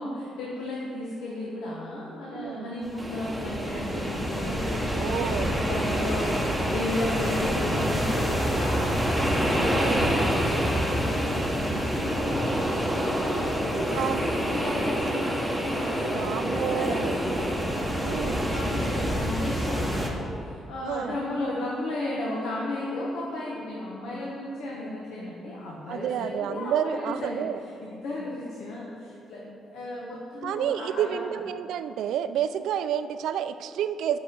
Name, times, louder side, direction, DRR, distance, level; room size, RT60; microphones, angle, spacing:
voice 1, 0.0-17.3 17.6-27.4 27.8-31.4, left 1 dB, 85° left, -4 dB, 1.1 m, -34 dB
voice 2, 2.3-2.7 4.9-5.5 9.8-10.1 14.0-14.2 16.1-17.1 17.9-18.5 20.8-21.2 25.9-27.6 30.4-34.2, right 9 dB, 80° right, 11 dB, 0.3 m, -30 dB
sound 1, 2.8-20.1, equal, ahead, 1.1 m, -27 dB
5.8 x 5.5 x 6.7 m, 2.8 s
cardioid pair, 90°, 0 cm